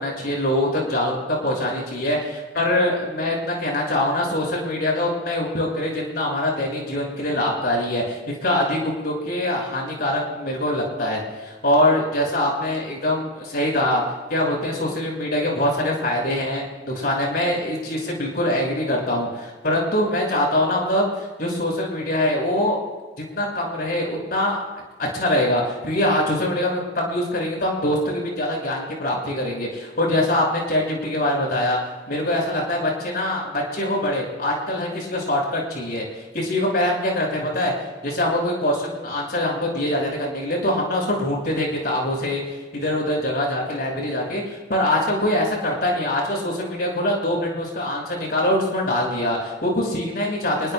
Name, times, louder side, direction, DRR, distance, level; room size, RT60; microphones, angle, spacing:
voice 1, 0.0-14.0 14.3-21.1 21.4-22.8 23.3-24.6 25.0-31.8 32.1-36.0 36.3-37.7 38.0-42.4 42.7-50.7, left 1 dB, 60° left, -1 dB, 5.9 m, -23 dB
29.5 x 20.5 x 2.2 m, 1.3 s
head